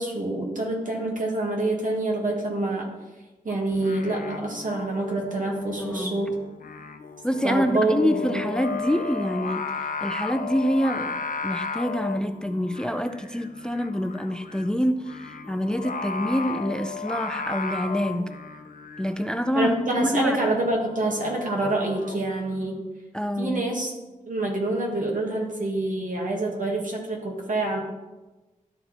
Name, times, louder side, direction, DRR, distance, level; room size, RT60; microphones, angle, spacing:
voice 1, 0.0-2.9 3.4-6.3 7.4-8.4 19.5-22.8 23.4-23.9 24.3-27.8, right 2 dB, 70° right, -1 dB, 1.8 m, -26 dB
Singing, 3.7-22.2, left 4 dB, 75° left, 0.6 m, -35 dB
voice 2, 5.8-6.2 7.2-9.7 10.0-18.3 19.0-20.4 23.1-23.6, equal, 5° left, 8 dB, 0.4 m, -26 dB
12.0 x 4.3 x 4.2 m, 1.1 s
wide cardioid pair, 95°, 14 cm